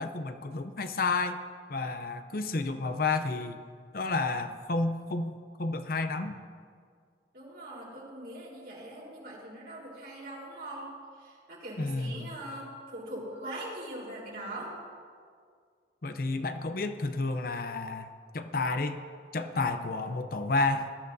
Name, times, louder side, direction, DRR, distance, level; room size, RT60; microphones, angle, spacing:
voice 1, 0.0-1.4 1.7-3.6 3.9-5.3 5.6-6.4 11.8-12.3 16.0-18.1 18.3-19.0 19.3-20.9, left 3 dB, 55° left, 8 dB, 0.7 m, -30 dB
voice 2, 7.3-10.9 11.2-14.7, right 1 dB, 60° right, -4 dB, 4.0 m, -41 dB
19.5 x 13.0 x 2.7 m, 2.1 s
head